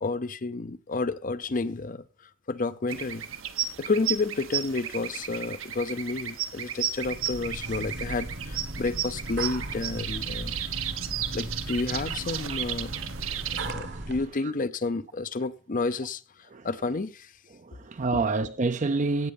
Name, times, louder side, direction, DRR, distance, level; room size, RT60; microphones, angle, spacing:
voice 1, 0.0-2.0 2.5-3.2 3.8-10.6 11.3-13.0 13.6-16.2 16.6-17.3, left 3 dB, 40° left, 0.6 m, -30 dB
sound 1, 2.9-13.7, right 10 dB, 80° right, 1.1 m, -34 dB
sound 2, 7.0-14.3, right 1 dB, 60° right, 1.3 m, -37 dB
voice 2, 11.9-12.6 13.2-14.1 14.4-14.5 16.5-16.7 17.5-19.3, right 3 dB, 35° right, 0.5 m, -30 dB
16.5 x 6.7 x 5.2 m
head